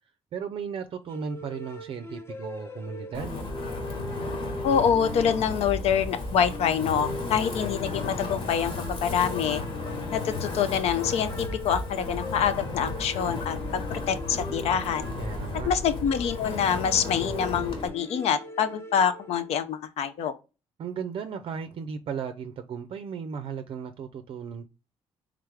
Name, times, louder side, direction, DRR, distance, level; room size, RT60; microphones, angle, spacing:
voice 1, 0.3-3.4 15.2-15.7 20.8-24.7, right 6 dB, 55° right, 0.4 m, -35 dB
sound 1, 1.1-19.6, left 1 dB, 25° left, 0.8 m, -41 dB
Wind, 3.1-17.9, left 3 dB, 60° left, 1.5 m, -34 dB
voice 2, 4.6-8.7 9.0-9.6 10.1-15.1 15.7-20.3, left 8 dB, 75° left, 0.5 m, -26 dB
3.5 x 3.3 x 3.4 m
cardioid pair, 105°, 11 cm